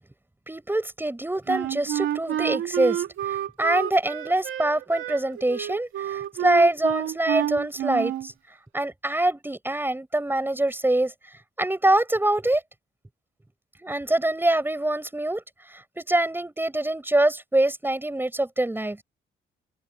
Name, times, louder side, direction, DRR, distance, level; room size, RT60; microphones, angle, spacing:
voice 1, 0.5-8.3 8.7-11.1 11.6-12.6 13.8-15.4 15.7-19.0, right 1 dB, 10° right, 7.4 m, -24 dB
Wind instrument woodwind instrument, 1.5-8.3, right 11 dB, 80° right, 2.7 m, -29 dB
open air
cardioid pair, 90°, 20 cm